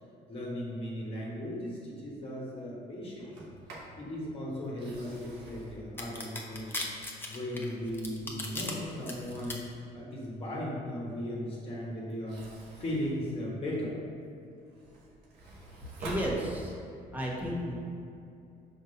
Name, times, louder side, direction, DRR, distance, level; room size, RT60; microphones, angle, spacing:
voice 1, 0.3-3.3 4.0-6.8 7.3-9.6 9.9-12.4 12.8-13.9, equal, 35° left, -5 dB, 1.4 m, -37 dB
Sliding door, 3.2-4.0 4.6-7.0 7.5-9.7 12.1-14.0 14.5-17.0, right 1 dB, 80° right, 1.5 m, -47 dB
sound 1, 6.0-8.7 9.1-9.5, left 2 dB, 10° left, 0.9 m, -37 dB
voice 2, 16.0-16.7 17.1-17.7, equal, 10° right, -4 dB, 1.4 m, -32 dB
5.2 x 4.4 x 5.4 m, 2.6 s
cardioid pair, 110°, 17 cm